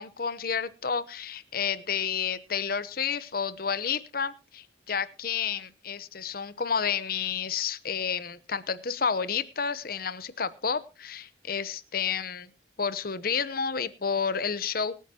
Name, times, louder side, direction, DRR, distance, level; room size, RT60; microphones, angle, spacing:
voice 1, 0.0-12.5 12.8-15.1, left 6 dB, 50° left, 16 dB, 0.8 m, -30 dB
24.5 x 9.3 x 2.9 m, 0.31 s
head